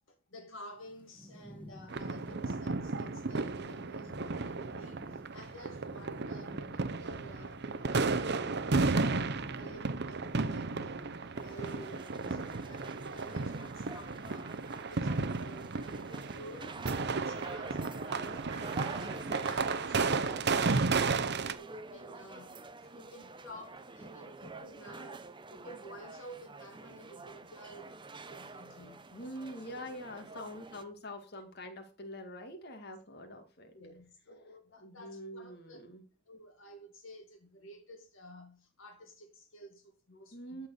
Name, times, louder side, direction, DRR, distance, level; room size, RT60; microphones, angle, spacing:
voice 1, 0.1-14.6 14.9-16.8 17.1-22.6 22.9-28.0 28.2-29.1 30.3-30.4 33.7-35.8 36.3-40.7, equal, 65° left, 2.0 m, -52 dB
Thunderstorm / Rain, 0.7-13.0, equal, 5° left, 1.8 m, -53 dB
sound 1, 1.9-21.5, right 3 dB, 55° right, 0.8 m, -33 dB
sound 2, 11.3-30.8, right 3 dB, 25° right, 0.8 m, -47 dB
voice 2, 14.7-15.4 17.4-17.6 18.2-18.4 22.8-23.0 28.7-33.8 34.8-36.1 40.3-40.7, equal, 50° left, 2.3 m, -46 dB
13.5 x 4.6 x 8.2 m
head